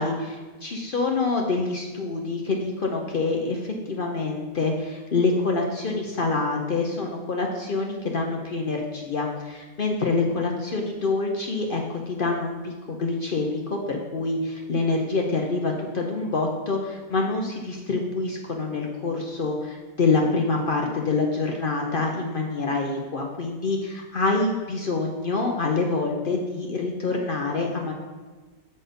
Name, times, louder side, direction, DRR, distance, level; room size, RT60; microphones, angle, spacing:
voice 1, 0.0-27.9, left 3 dB, 70° left, 1 dB, 0.5 m, -26 dB
7.9 x 4.2 x 5.2 m, 1.4 s
omnidirectional pair, 1.9 m